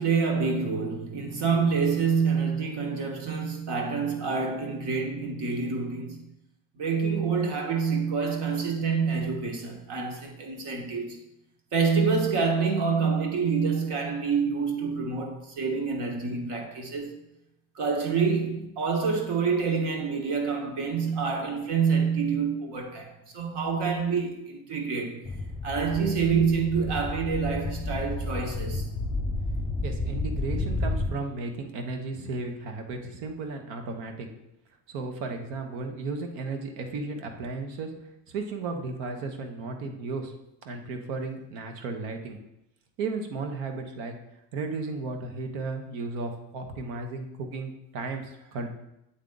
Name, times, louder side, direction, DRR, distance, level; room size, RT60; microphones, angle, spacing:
voice 1, 0.0-6.2 6.8-11.2 11.7-17.1 17.7-25.2 25.6-28.9, right 5 dB, 60° right, 1.5 m, -27 dB
sound 1, 25.2-31.1, left 2 dB, 10° left, 0.9 m, -31 dB
voice 2, 29.8-34.3 34.9-37.9 38.3-40.3 40.6-42.4 43.0-44.2 44.5-48.7, right 3 dB, 80° right, 1.1 m, -34 dB
8.2 x 3.5 x 3.9 m
supercardioid pair, 95°, 46 cm